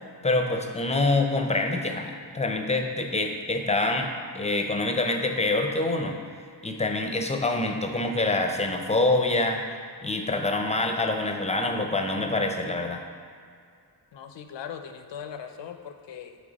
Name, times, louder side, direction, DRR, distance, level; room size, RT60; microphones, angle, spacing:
voice 1, 0.2-4.1 4.3-6.2 6.6-9.6 10.0-13.0, left 2 dB, 15° left, 4 dB, 0.5 m, -26 dB
voice 2, 14.1-16.4, left 8 dB, 80° left, 7 dB, 0.6 m, -39 dB
8.6 x 3.4 x 4.0 m, 2.3 s
wide cardioid pair, 100°, 43 cm